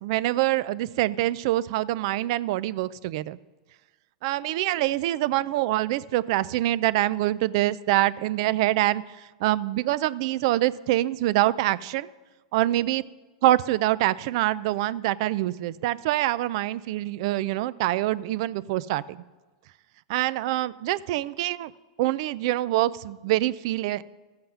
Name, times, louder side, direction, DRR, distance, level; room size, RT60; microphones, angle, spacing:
voice 1, 0.0-3.4 4.2-12.1 12.5-13.0 13.4-19.2 20.1-21.7 22.0-24.0, right 15 dB, 60° right, 18 dB, 0.4 m, -25 dB
13.5 x 7.7 x 5.7 m, 1.2 s
hypercardioid pair, 120°, 3 cm